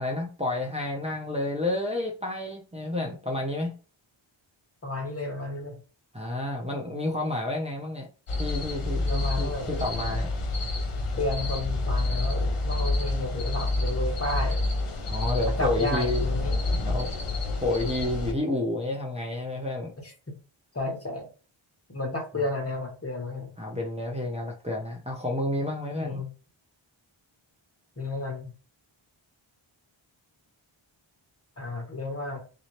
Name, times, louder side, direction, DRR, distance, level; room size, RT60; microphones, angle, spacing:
voice 1, 0.0-3.8 6.1-8.1 8.4-10.3 15.1-16.2 16.8-17.1 17.6-19.9 23.6-26.2, left 1 dB, 15° right, -2 dB, 0.9 m, -30 dB
voice 2, 4.8-5.8 9.0-9.9 11.2-14.6 15.5-16.6 20.0-20.3 20.7-21.3 21.9-23.5 26.0-26.3 28.0-28.5 31.6-32.4, left 2 dB, 30° left, 1 dB, 1.4 m, -32 dB
sound 1, 8.3-18.3, left 2 dB, 90° left, 0.9 m, -28 dB
3.9 x 2.9 x 3.2 m, 0.35 s
wide cardioid pair, 90°, 49 cm